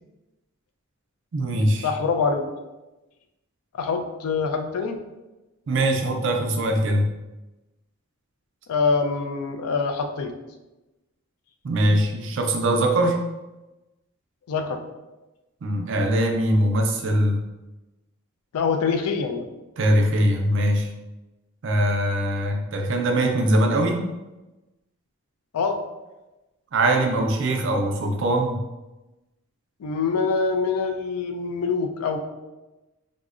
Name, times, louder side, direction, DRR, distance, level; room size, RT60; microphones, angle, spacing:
voice 1, 1.3-1.9 5.7-7.1 11.6-13.2 15.6-17.4 19.8-20.9 21.6-24.0 26.7-28.6, right 1 dB, 55° right, 3 dB, 0.4 m, -22 dB
voice 2, 1.8-2.5 3.7-5.0 8.7-10.3 14.5-14.8 18.5-19.5 25.5-25.8 29.8-32.2, left 5 dB, 80° left, 6 dB, 0.4 m, -24 dB
3.6 x 2.0 x 2.4 m, 1.0 s
head